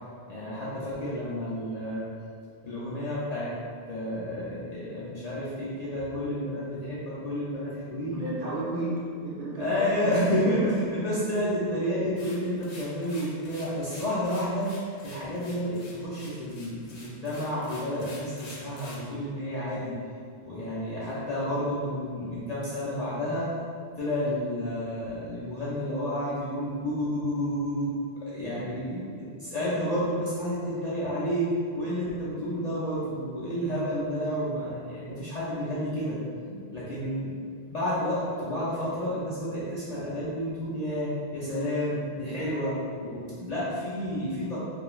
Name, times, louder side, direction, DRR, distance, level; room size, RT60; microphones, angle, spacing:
voice 1, 0.3-2.1 2.6-3.5 3.9-8.2 9.6-10.6 10.9-14.7 15.0-19.9 20.4-23.5 24.0-27.9 28.2-28.9 29.2-31.5 31.8-36.2 36.7-37.3 37.7-42.8 43.0-43.2 43.5-44.6, left 1 dB, 55° left, -10 dB, 0.5 m, -30 dB
voice 2, 8.1-10.6 28.5-28.6 28.9-29.2 36.4-36.6 43.2-43.5, right 2 dB, 60° right, -6 dB, 0.6 m, -32 dB
sound 1, 12.2-19.1, left 2 dB, 80° left, 0.9 m, -47 dB
2.4 x 2.2 x 3.0 m, 2.2 s
omnidirectional pair, 1.1 m